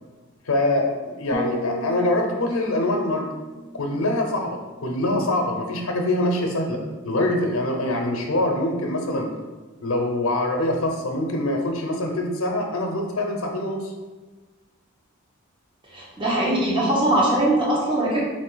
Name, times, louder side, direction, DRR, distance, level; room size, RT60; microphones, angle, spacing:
voice 1, 0.5-3.3 3.8-9.3 9.8-13.9, left 1 dB, 75° left, 1 dB, 0.7 m, -24 dB
sound 1, 1.3-5.3 5.6-6.0, right 1 dB, ahead, 0.7 m, -36 dB
voice 2, 15.9-18.2, right 1 dB, 25° right, -6 dB, 0.9 m, -21 dB
4.2 x 2.6 x 3.8 m, 1.3 s
head